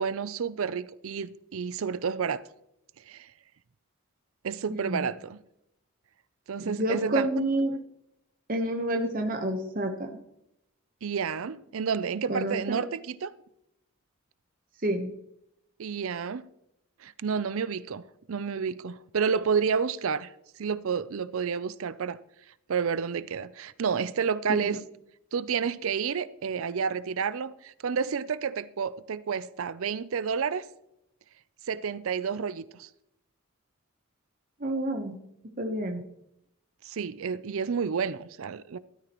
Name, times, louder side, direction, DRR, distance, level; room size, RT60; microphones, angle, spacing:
voice 1, 0.0-2.4 3.1-3.3 4.4-5.4 6.5-7.3 11.0-13.3 15.8-16.4 17.0-18.0 18.3-20.3 20.6-22.2 22.7-24.8 25.3-30.7 31.7-32.9 36.9-38.8, right 6 dB, 70° right, 0.5 m, -30 dB
voice 2, 4.7-5.1 6.6-7.7 8.5-10.1 12.3-12.8 14.8-15.1 24.5-24.8 34.6-35.2 35.6-36.0, right 1 dB, 40° right, 1.0 m, -29 dB
13.0 x 13.0 x 3.0 m
head